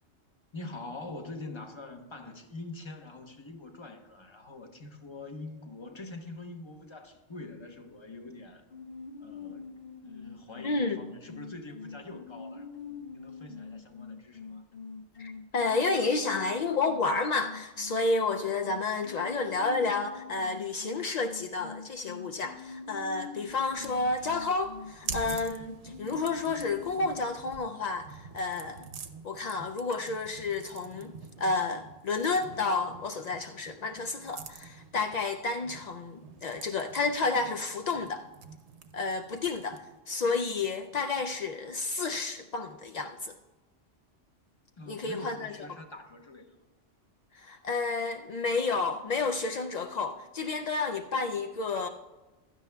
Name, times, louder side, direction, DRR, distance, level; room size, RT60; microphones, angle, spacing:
voice 1, 0.5-8.6 9.2-9.7 10.0-14.6 44.8-46.5, left 2 dB, 25° left, 5 dB, 0.9 m, -44 dB
sound 1, 8.7-27.2, left 5 dB, 55° left, 1.0 m, -45 dB
voice 2, 10.6-11.0 15.2-28.9 29.2-31.1 31.4-38.2 38.9-43.3 44.9-45.5 47.3-51.9, left 3 dB, 75° left, 5 dB, 0.3 m, -31 dB
sound 2, 23.4-40.0, right 6 dB, 65° right, 1.0 m, -47 dB
15.5 x 12.0 x 2.2 m, 1.2 s
omnidirectional pair, 1.3 m